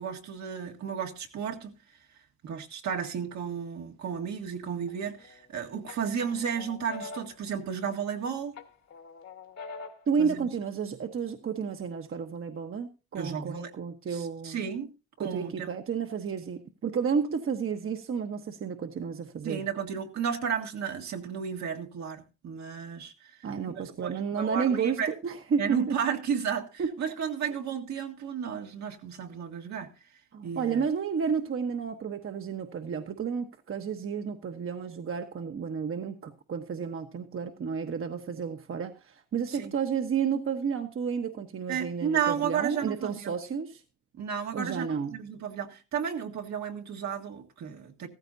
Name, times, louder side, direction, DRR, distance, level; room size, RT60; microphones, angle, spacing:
voice 1, 0.0-1.8 2.4-8.6 10.2-10.5 13.2-13.7 14.1-14.9 15.2-15.7 19.4-23.4 23.7-25.1 25.6-29.9 30.4-30.8 39.5-39.7 41.7-43.3 44.1-44.9 45.1-48.1, right 7 dB, 65° right, 1.9 m, -33 dB
sound 1, 4.9-5.5 5.9-8.2 8.6-10.2, left 4 dB, 60° left, 1.9 m, -44 dB
voice 2, 10.1-14.6 15.2-19.6 23.4-25.9 26.8-26.9 30.3-43.8 44.5-45.1, right 6 dB, 45° right, 1.2 m, -31 dB
15.0 x 14.0 x 2.7 m
cardioid pair, 90°, 30 cm